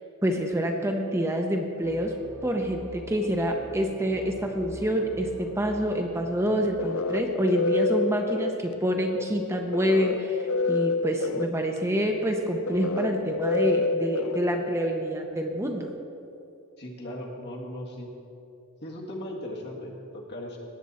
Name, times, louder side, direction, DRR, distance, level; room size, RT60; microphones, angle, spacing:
voice 1, 0.2-2.1 2.4-15.9, equal, 10° right, 3 dB, 0.6 m, -27 dB
sound 1, 1.8-6.9, right 1 dB, 20° left, 2.4 m, -45 dB
sound 2, 6.4-15.1, left 3 dB, 65° left, 0.4 m, -29 dB
voice 2, 16.8-18.1 18.8-20.6, left 1 dB, 50° left, -2 dB, 1.9 m, -37 dB
18.0 x 7.5 x 4.2 m, 2.9 s
head